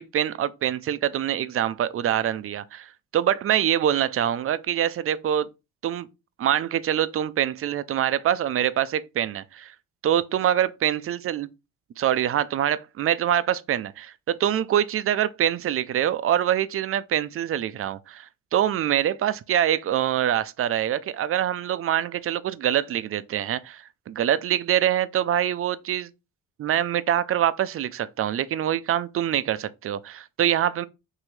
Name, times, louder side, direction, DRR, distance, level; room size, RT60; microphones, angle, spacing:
voice 1, 0.0-5.5 5.8-6.1 6.4-9.7 10.0-11.5 12.0-26.1 26.6-30.9, right 10 dB, 50° right, 0.4 m, -25 dB
6.0 x 2.7 x 3.1 m
cardioid pair, 90°, 30 cm